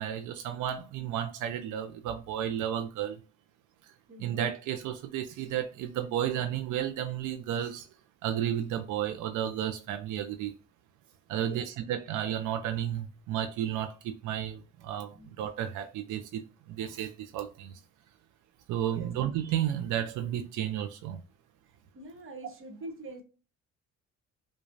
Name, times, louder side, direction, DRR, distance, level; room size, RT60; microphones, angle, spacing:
voice 1, 0.0-3.2 3.8-3.9 4.2-7.9 8.2-10.5 11.3-17.8 18.7-21.2, right 10 dB, 90° right, 0.5 m, -33 dB
voice 2, 4.1-4.4 11.3-11.6 15.2-15.3 18.9-19.1 21.9-23.2, right 2 dB, 45° right, 1.1 m, -44 dB
5.0 x 2.3 x 2.5 m
cardioid pair, 90°, 30 cm